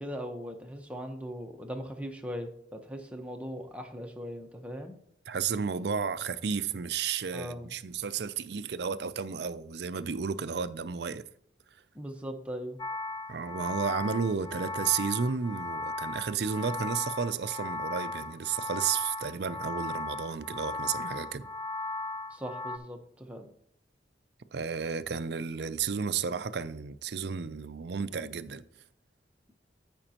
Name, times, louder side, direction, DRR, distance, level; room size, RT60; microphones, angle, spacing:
voice 1, 0.0-5.0 7.3-7.7 11.9-12.8 22.3-23.5, equal, 5° right, 1.0 m, -39 dB
voice 2, 5.3-11.2 13.3-21.5 24.5-28.6, right 6 dB, 65° right, 0.5 m, -32 dB
sound 1, 12.8-22.8, left 2 dB, 25° left, 0.5 m, -37 dB
14.0 x 5.2 x 2.9 m
head